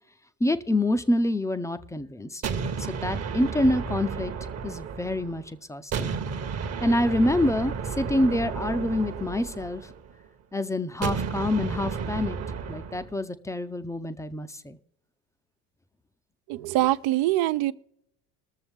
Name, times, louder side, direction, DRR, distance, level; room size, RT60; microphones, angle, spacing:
voice 1, 0.4-2.4 2.9-4.3 4.6-6.1 6.8-9.9 10.5-12.4 12.7-14.8, left 1 dB, 5° left, 0.6 m, -26 dB
sound 1, 2.4-5.5 5.9-10.2 11.0-13.1, right 6 dB, 35° right, 1.0 m, -32 dB
voice 2, 16.5-17.7, right 16 dB, 55° right, 0.6 m, -24 dB
20.5 x 7.0 x 3.5 m
hypercardioid pair, 70°, 47 cm